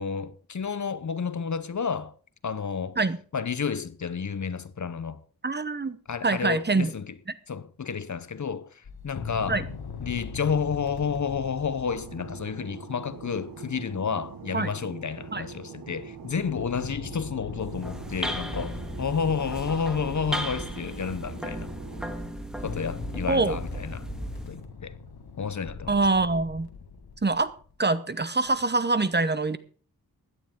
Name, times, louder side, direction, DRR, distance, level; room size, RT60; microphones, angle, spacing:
voice 1, 0.0-2.1 2.4-3.0 3.3-5.2 6.1-7.2 7.5-9.6 10.0-21.7 22.6-24.1 24.5-25.0 25.4-25.9, left 6 dB, 50° left, 0.8 m, -31 dB
voice 2, 5.4-6.0 6.2-6.9 9.5-9.6 14.5-14.7 15.3-15.4 23.3-23.6 25.9-26.7 27.2-27.5 27.8-29.6, right 3 dB, 30° right, 0.9 m, -24 dB
sound 1, 8.8-12.7 16.3-21.6 22.3-27.7 28.5-28.6, left 5 dB, 80° left, 1.7 m, -41 dB
Fixed-wing aircraft airplane, 11.9-22.1, right 5 dB, 65° right, 1.7 m, -43 dB
sound 2, 17.6-24.6, equal, ahead, 1.8 m, -35 dB
16.5 x 11.5 x 3.7 m
wide cardioid pair, 120°, 37 cm